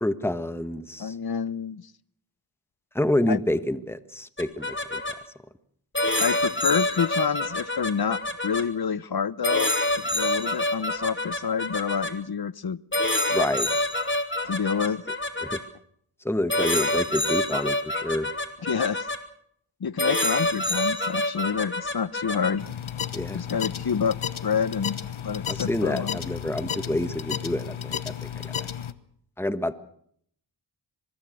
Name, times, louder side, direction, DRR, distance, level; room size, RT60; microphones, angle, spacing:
voice 1, 0.0-1.1 2.9-5.0 13.3-13.7 15.4-15.6 16.2-18.3 23.1-23.4 25.5-28.7 29.4-29.7, left 1 dB, 5° left, 12 dB, 1.4 m, -28 dB
voice 2, 1.0-1.9 3.3-3.4 6.2-12.8 14.4-15.0 18.6-19.1 19.8-22.7 23.3-26.2, left 6 dB, 50° left, 19 dB, 0.9 m, -28 dB
sound 1, 4.4-5.1 5.9-8.6 9.4-12.1 12.9-15.6 16.5-19.2 20.0-22.6, left 1 dB, 25° left, 2.9 m, -26 dB
sound 2, 22.6-28.9, left 8 dB, 80° left, 1.2 m, -33 dB
24.5 x 20.5 x 6.4 m, 0.66 s
cardioid pair, 50°, 48 cm